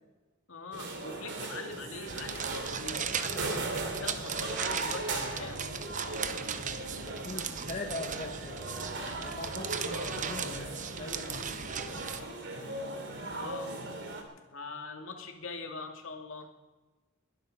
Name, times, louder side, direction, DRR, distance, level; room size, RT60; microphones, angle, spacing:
voice 1, 0.5-3.7 4.0-5.6 9.8-10.2 13.3-13.8 14.5-16.5, left 3 dB, 65° left, 4 dB, 2.5 m, -43 dB
sound 1, 0.7-14.2, right 2 dB, 55° right, 2.9 m, -38 dB
sound 2, 2.1-12.2, right 7 dB, 35° right, 0.9 m, -38 dB
voice 2, 7.0-8.6 9.2-11.5, left 2 dB, 35° left, 2 dB, 1.2 m, -41 dB
21.0 x 12.0 x 5.5 m, 1.2 s
head